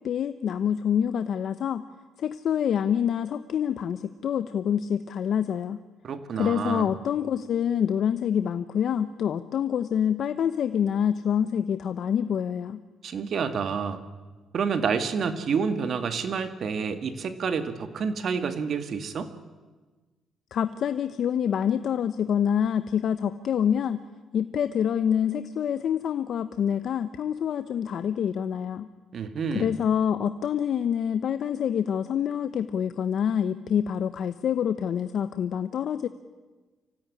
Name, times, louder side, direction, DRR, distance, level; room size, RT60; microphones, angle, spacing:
voice 1, 0.0-1.8 2.2-5.8 6.4-12.8 20.5-24.0 24.3-28.9 29.5-36.1, left 8 dB, 65° left, 11 dB, 0.8 m, -26 dB
voice 2, 6.0-6.9 13.0-14.0 14.5-19.3 29.1-29.8, right 6 dB, 55° right, 9 dB, 2.1 m, -28 dB
25.5 x 16.5 x 9.9 m, 1.3 s
cardioid pair, 90°, 0 cm